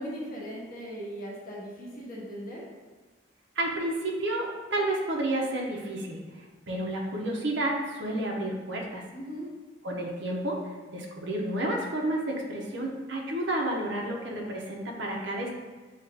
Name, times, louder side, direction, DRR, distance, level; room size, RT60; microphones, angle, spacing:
voice 1, 0.0-2.6 9.1-9.5, equal, 45° left, -5 dB, 1.3 m, -38 dB
voice 2, 3.6-9.0 9.8-15.5, right 1 dB, 65° right, -1 dB, 0.8 m, -31 dB
7.3 x 2.5 x 2.7 m, 1.3 s
head